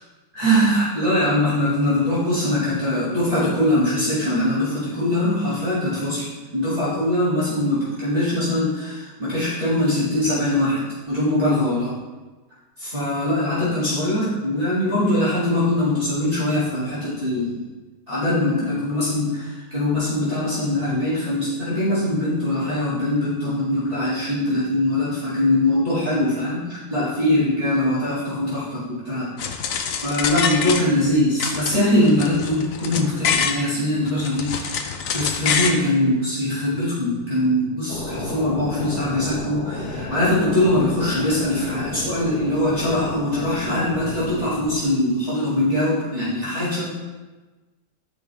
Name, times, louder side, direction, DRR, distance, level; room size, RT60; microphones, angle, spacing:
voice 1, 0.3-11.9 12.8-17.6 18.1-29.3 30.0-34.8 35.1-46.8, left 1 dB, 25° right, -12 dB, 2.2 m, -22 dB
sound 1, 29.4-31.1 31.4-33.6 34.1-35.8, left 6 dB, 65° left, 1.0 m, -25 dB
sound 2, 37.9-44.7, left 2 dB, 85° left, 1.7 m, -32 dB
9.9 x 5.2 x 3.4 m, 1.2 s
omnidirectional pair, 1.6 m